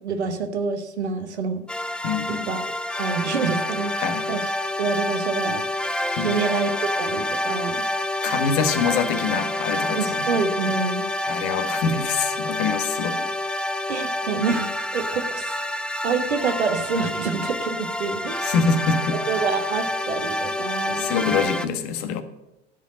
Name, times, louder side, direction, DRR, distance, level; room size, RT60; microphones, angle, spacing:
voice 1, 0.0-1.6 2.5-2.6 2.9-4.5 4.8-5.6 6.2-7.8 9.9-11.0 13.9-14.7 14.9-15.5 16.0-18.5 19.3-21.1, right 5 dB, 80° right, 1.3 m, -27 dB
sound 1, 1.7-21.7, left 1 dB, 5° left, 0.5 m, -27 dB
voice 2, 2.0-2.5 3.9-4.3 6.2-6.4 8.2-10.3 11.2-13.8 18.4-19.2 21.0-22.2, left 5 dB, 55° left, 1.3 m, -25 dB
12.5 x 5.3 x 7.5 m
figure-of-eight pair, 75°, 33 cm